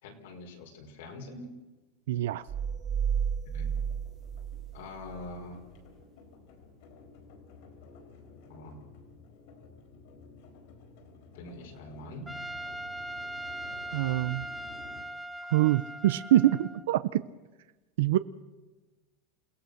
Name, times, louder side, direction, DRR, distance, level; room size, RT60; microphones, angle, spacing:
voice 1, 0.0-1.5 3.5-3.7 4.7-5.6 8.5-8.8 11.3-12.3, left 2 dB, 75° left, 1 dB, 4.8 m, -44 dB
sound 1, 2.1-15.0, left 4 dB, 60° left, 4.6 m, -53 dB
voice 2, 2.1-2.4 13.9-14.5 15.5-17.2 18.0-18.2, right 14 dB, 80° right, 14 dB, 0.6 m, -25 dB
sound 2, 2.5-5.3, right 7 dB, 25° right, 1.0 m, -32 dB
Trumpet, 12.3-16.9, right 1 dB, ahead, 0.7 m, -40 dB
28.5 x 17.0 x 6.6 m, 1.2 s
supercardioid pair, 160°, 0 cm